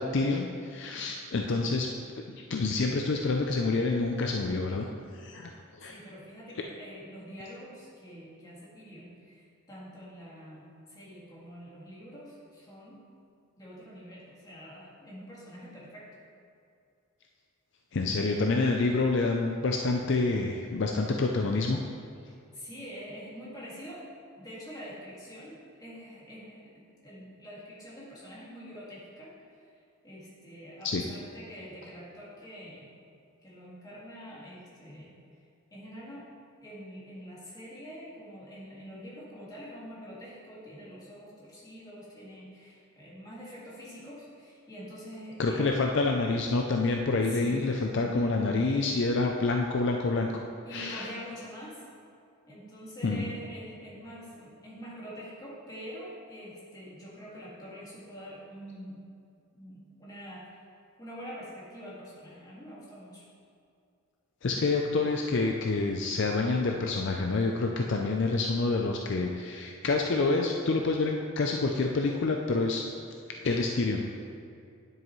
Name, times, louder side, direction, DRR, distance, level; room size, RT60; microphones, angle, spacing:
voice 1, 0.0-1.9 2.2-4.9 5.1-5.5 5.8-5.9 17.9-21.8 30.8-31.0 45.4-50.4 50.7-51.1 53.0-53.3 64.4-72.8 73.4-74.0, left 3 dB, 55° left, 2 dB, 0.5 m, -27 dB
voice 2, 5.8-13.0 13.6-16.2 22.3-24.1 24.4-29.7 30.0-32.9 33.4-35.1 35.7-36.3 36.6-45.9 47.3-47.6 48.0-48.5 50.7-51.8 52.5-59.0 59.5-60.6 61.0-63.3, equal, 15° left, -7 dB, 2.0 m, -45 dB
9.7 x 7.7 x 3.2 m, 2.4 s
head